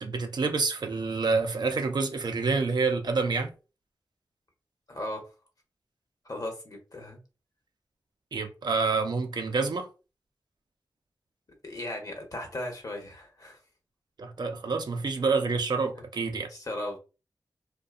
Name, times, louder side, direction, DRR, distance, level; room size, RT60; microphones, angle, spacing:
voice 1, 0.0-3.5 8.3-9.9 14.2-16.5, right 4 dB, 60° right, 0.5 m, -28 dB
voice 2, 4.9-5.2 6.2-7.2 11.6-13.6 16.5-17.0, left 1 dB, 50° left, 0.9 m, -36 dB
2.6 x 2.2 x 2.4 m
cardioid pair, 45°, 8 cm